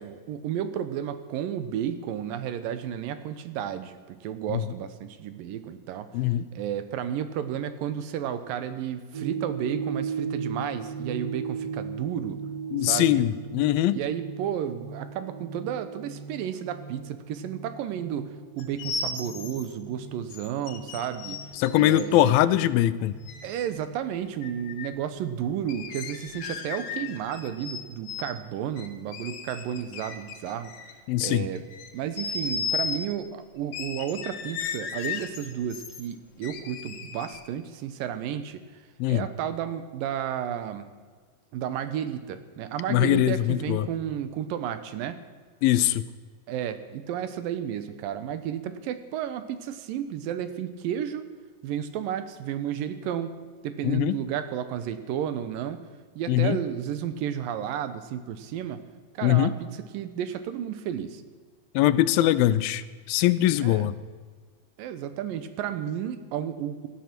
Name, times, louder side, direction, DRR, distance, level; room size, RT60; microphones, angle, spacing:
voice 1, 0.0-6.1 6.5-12.4 12.8-13.2 13.9-21.4 21.8-22.4 23.4-30.7 31.2-31.6 31.9-38.6 39.1-40.9 41.5-45.2 46.5-51.2 51.6-53.3 53.6-55.8 56.2-58.8 59.1-59.7 59.9-61.2 63.6-63.9 64.8-66.9, right 9 dB, 75° right, 11 dB, 2.4 m, -32 dB
voice 2, 6.1-6.5 12.7-14.0 21.6-23.1 31.1-31.5 39.0-39.3 42.9-43.9 45.6-46.1 53.8-54.2 56.3-56.6 59.2-59.5 61.8-64.0, left 13 dB, 80° left, 15 dB, 2.3 m, -22 dB
sound 1, 9.1-28.5, right 6 dB, 60° right, 0.9 m, -39 dB
sound 2, 18.6-19.7 20.3-22.1 23.3-23.7 24.4-24.9 25.7-27.8 28.1-28.3 28.8-31.3 31.6-33.0 33.7-36.0 36.4-37.5, left 5 dB, 65° left, 2.5 m, -35 dB
18.0 x 13.5 x 6.0 m, 1.5 s
omnidirectional pair, 4.4 m